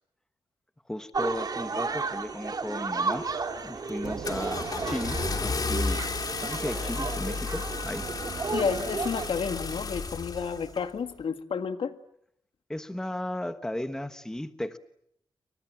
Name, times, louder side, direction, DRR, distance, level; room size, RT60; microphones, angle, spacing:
voice 1, 0.9-3.3 3.6-6.0 6.4-8.0 12.7-14.8, left 1 dB, 5° left, 9 dB, 1.3 m, -35 dB
sound 1, 1.1-9.3, right 4 dB, 40° right, 3.0 m, -33 dB
Car / Engine starting, 3.1-3.4 3.9-10.8, left 4 dB, 45° left, 3.2 m, -33 dB
Thunder / Rain, 4.0-9.8, right 6 dB, 70° right, 1.8 m, -43 dB
voice 2, 8.5-12.0, left 6 dB, 70° left, 9 dB, 1.8 m, -31 dB
29.5 x 25.0 x 7.4 m, 0.74 s
wide cardioid pair, 135°, 9 cm